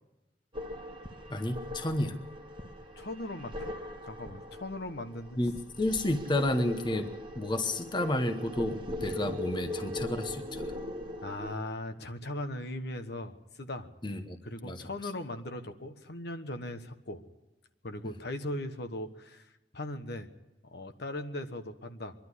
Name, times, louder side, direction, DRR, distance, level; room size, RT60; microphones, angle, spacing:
sound 1, 0.5-11.6, left 1 dB, 25° right, 1.6 m, -40 dB
voice 1, 1.3-2.2 5.4-10.8 14.0-14.4 14.6-14.9 18.0-18.1, left 1 dB, 25° left, 8 dB, 1.0 m, -31 dB
voice 2, 3.0-3.7 4.0-5.4 11.2-13.9 14.4-17.2 17.8-20.3 20.6-22.1, left 1 dB, 60° left, 7 dB, 1.3 m, -39 dB
24.0 x 12.0 x 9.8 m, 1.0 s
head